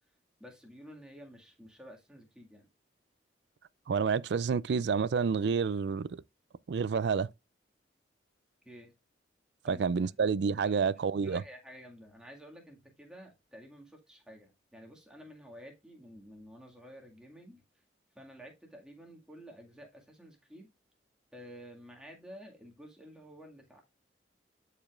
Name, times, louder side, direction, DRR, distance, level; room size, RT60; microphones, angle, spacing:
voice 1, 0.4-2.7 8.6-8.9 9.6-9.8 10.7-10.9 11.2-17.6 18.1-20.7 21.3-23.8, equal, 5° right, 1.9 m, -51 dB
voice 2, 3.9-6.2 6.7-7.3 9.7-11.4, right 5 dB, 65° right, 0.4 m, -29 dB
11.5 x 5.0 x 2.4 m
head